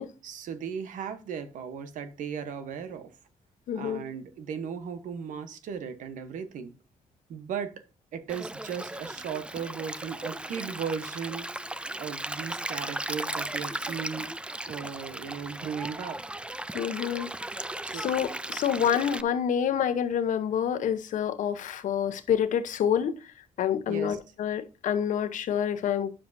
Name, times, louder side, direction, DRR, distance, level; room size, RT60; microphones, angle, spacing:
voice 1, 0.2-3.1 3.7-6.7 7.3-7.7 8.1-11.5 12.0-14.4 14.7-16.2 17.8-18.0 23.9-24.2, right 7 dB, 85° right, 1.1 m, -36 dB
voice 2, 3.7-4.0 16.7-17.3 17.9-23.1 23.6-26.1, left 8 dB, 80° left, 1.0 m, -27 dB
Stream, 8.3-19.2, right 1 dB, 10° right, 0.4 m, -36 dB
10.0 x 7.1 x 2.7 m
cardioid pair, 75°, 13 cm